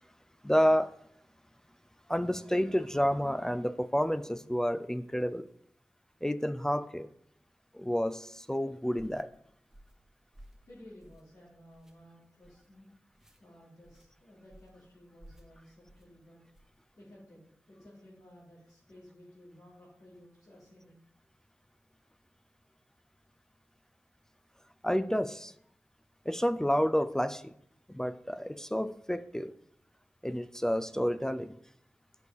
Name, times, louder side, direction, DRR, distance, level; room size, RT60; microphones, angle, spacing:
voice 1, 0.4-1.0 2.1-5.5 6.2-7.1 7.7-9.3 24.8-25.5 26.3-27.5 27.9-29.6 30.2-31.6, equal, 10° left, 0.4 m, -30 dB
sound 1, 8.9-9.2 9.7-10.0 10.3-10.6 11.0-11.4 11.7-11.9 12.4-12.7 13.1-13.4 13.8-14.1 14.5-14.8 15.2-15.5 15.9-16.1 16.5-16.8, equal, 5° right, 1.2 m, -56 dB
voice 2, 10.6-12.9 13.4-16.4 17.0-20.9, left 1 dB, 60° left, 3.4 m, -55 dB
9.5 x 6.4 x 5.1 m
wide cardioid pair, 85°, 6 cm